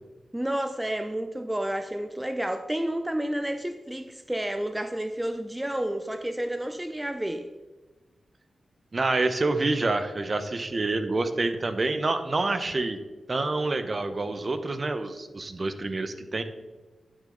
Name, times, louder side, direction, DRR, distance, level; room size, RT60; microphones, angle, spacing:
voice 1, 0.3-7.5, right 1 dB, 10° right, 7 dB, 0.5 m, -30 dB
voice 2, 8.9-13.0 13.3-16.4, right 2 dB, 40° right, 9 dB, 0.8 m, -27 dB
10.5 x 6.2 x 3.9 m, 1.2 s
cardioid pair, 65°, 0 cm